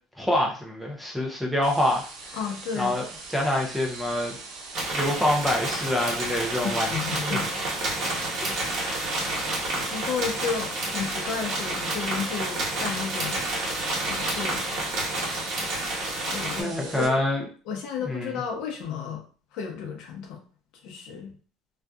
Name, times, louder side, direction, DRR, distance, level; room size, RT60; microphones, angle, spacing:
voice 1, 0.2-2.1 2.7-4.4 4.9-7.7 8.8-9.1 16.6-17.4 18.0-18.4, left 1 dB, ahead, -1 dB, 0.6 m, -26 dB
sound 1, 1.6-17.1, right 3 dB, 85° right, 0.7 m, -41 dB
voice 2, 2.3-2.9 6.6-7.5 9.9-13.5 14.1-14.6 16.3-17.2 17.7-19.2 19.5-20.4 20.8-21.3, left 6 dB, 65° left, 1 dB, 0.7 m, -32 dB
sound 2, 4.7-16.6, right 2 dB, 55° right, 1.2 m, -29 dB
2.6 x 2.4 x 2.3 m, 0.40 s
cardioid pair, 135°, 0 cm